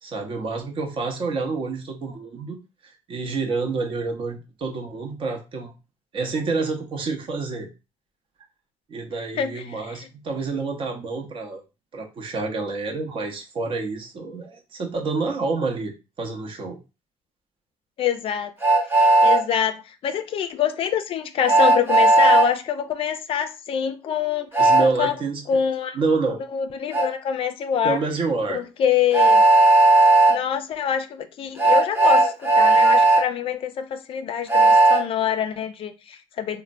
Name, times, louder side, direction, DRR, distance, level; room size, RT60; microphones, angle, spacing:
voice 1, 0.0-2.6 2.8-5.7 6.1-7.7 8.9-11.6 11.9-16.8 24.6-25.4 25.9-26.4 27.8-28.6, right 4 dB, 50° right, 0.8 m, -28 dB
voice 2, 9.4-10.0 18.0-18.5 19.0-24.5 24.8-25.2 25.5-26.0 26.5-28.0 28.5-29.4 30.3-36.6, left 8 dB, 50° left, 0.4 m, -25 dB
Train, 18.6-19.4 21.5-22.5 24.5-24.9 26.9-27.1 29.1-30.4 31.6-33.2 34.5-35.0, right 2 dB, 20° right, 0.8 m, -15 dB
3.1 x 2.1 x 2.5 m
cardioid pair, 90°, 12 cm